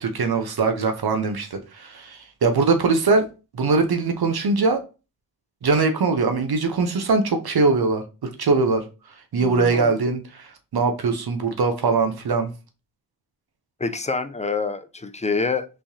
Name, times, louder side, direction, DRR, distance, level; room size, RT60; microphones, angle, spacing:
voice 1, 0.0-3.3 3.5-4.8 5.6-8.8 9.3-12.5, right 4 dB, 75° right, 6 dB, 0.6 m, -22 dB
voice 2, 9.4-9.9 13.8-15.7, left 4 dB, 20° left, 10 dB, 0.4 m, -26 dB
3.4 x 3.1 x 2.7 m, 0.31 s
wide cardioid pair, 45°, 39 cm